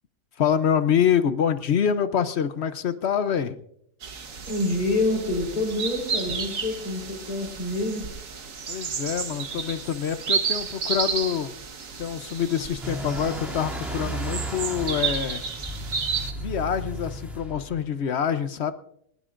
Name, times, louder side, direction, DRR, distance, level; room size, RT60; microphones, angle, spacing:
voice 1, 0.4-3.5 8.7-11.5 12.0-15.4 16.3-18.7, left 8 dB, 55° left, 12 dB, 0.7 m, -26 dB
sound 1, 4.0-16.3, right 6 dB, 55° right, 1.6 m, -32 dB
voice 2, 4.5-8.1, left 2 dB, 70° left, 0 dB, 4.9 m, -27 dB
sound 2, 12.8-17.9, right 1 dB, ahead, 2.6 m, -34 dB
20.0 x 19.5 x 2.5 m, 0.71 s
omnidirectional pair, 1.8 m